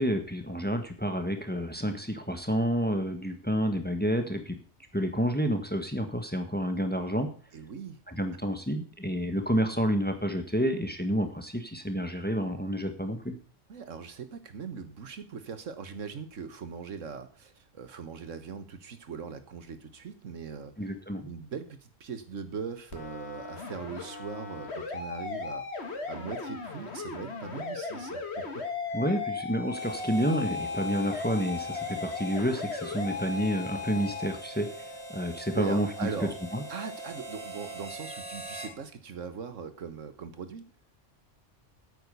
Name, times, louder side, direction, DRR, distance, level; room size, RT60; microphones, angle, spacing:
voice 1, 0.0-4.6 4.9-7.3 8.1-13.3 20.8-21.3 28.9-36.1 36.5-36.6, equal, 10° left, 7 dB, 1.4 m, -29 dB
voice 2, 7.5-8.0 13.7-20.9 21.2-28.2 28.6-28.7 28.9-29.0 35.6-36.3 36.7-40.6, right 6 dB, 80° right, 10 dB, 1.6 m, -40 dB
sound 1, 22.9-34.3, left 4 dB, 55° left, 2.0 m, -37 dB
Harmonica, 29.7-38.8, right 1 dB, 60° right, 2.6 m, -43 dB
9.0 x 8.9 x 6.9 m, 0.40 s
omnidirectional pair, 1.3 m